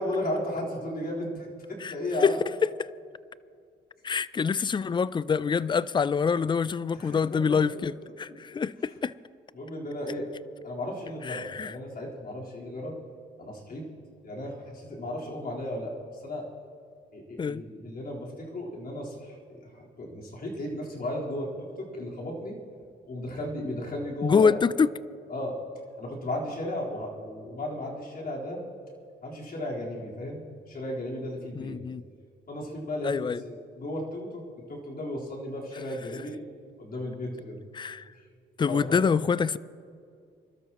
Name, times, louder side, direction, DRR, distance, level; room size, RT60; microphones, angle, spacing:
voice 1, 0.0-2.4 6.9-7.4 8.5-8.6 9.5-10.3 10.6-12.9 13.4-13.8 14.2-16.5 17.1-19.4 19.7-22.5 23.1-24.6 25.3-25.5 26.0-28.6 29.2-30.4 30.7-31.7 32.5-34.4 34.7-36.4 36.8-37.6 38.6-39.0, left 1 dB, 50° left, -4 dB, 4.1 m, -35 dB
voice 2, 4.0-9.1 11.2-11.8 17.4-17.6 24.2-24.9 31.5-32.0 33.0-33.4 37.7-38.1 38.6-39.6, left 6 dB, 25° left, 19 dB, 0.4 m, -26 dB
26.0 x 13.0 x 3.0 m, 2.3 s
cardioid pair, 90°, 20 cm